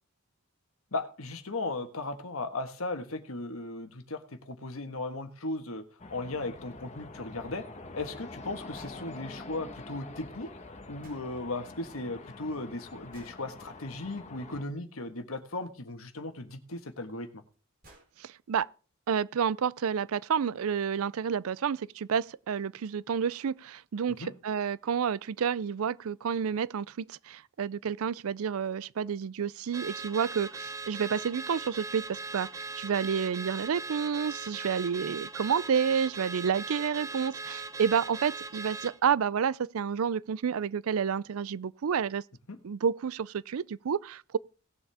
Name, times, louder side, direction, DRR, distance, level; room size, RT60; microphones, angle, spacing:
voice 1, 0.9-5.8 6.1-7.7 7.9-10.5 10.9-17.4 24.1-24.3 42.5-42.6, left 2 dB, 75° left, 1.5 m, -37 dB
sound 1, 6.0-14.6, left 2 dB, 30° left, 1.3 m, -46 dB
sound 2, 8.7-9.0 11.0-11.3 13.1-13.4 15.7-15.8 17.1-17.2 17.5-17.6 17.8-18.1, right 2 dB, 40° right, 4.1 m, -55 dB
voice 2, 18.2-18.7 19.1-42.2 42.6-44.4, right 7 dB, 80° right, 0.4 m, -30 dB
Car / Alarm, 29.7-39.0, right 3 dB, 15° right, 0.5 m, -40 dB
18.5 x 7.2 x 3.5 m
head